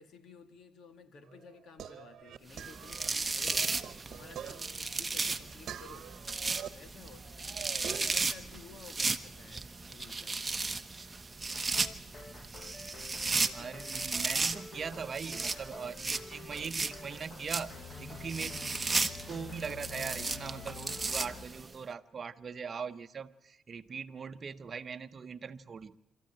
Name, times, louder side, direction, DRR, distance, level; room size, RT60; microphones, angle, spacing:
voice 1, 0.0-3.7 4.1-6.1 6.7-7.6 8.0-10.6 13.1-13.8, left 5 dB, 65° left, 9 dB, 2.0 m, -54 dB
sound 1, 1.2-6.7 7.1-8.2, right 9 dB, 65° right, 1.1 m, -45 dB
sound 2, 2.5-21.7, right 3 dB, 20° right, 1.1 m, -35 dB
sound 3, 11.5-21.5, left 6 dB, 45° left, 1.1 m, -49 dB
voice 2, 13.2-18.6 19.3-26.0, right 6 dB, 45° right, 10 dB, 0.9 m, -41 dB
25.5 x 14.0 x 9.0 m, 0.94 s
cardioid pair, 90°, 0 cm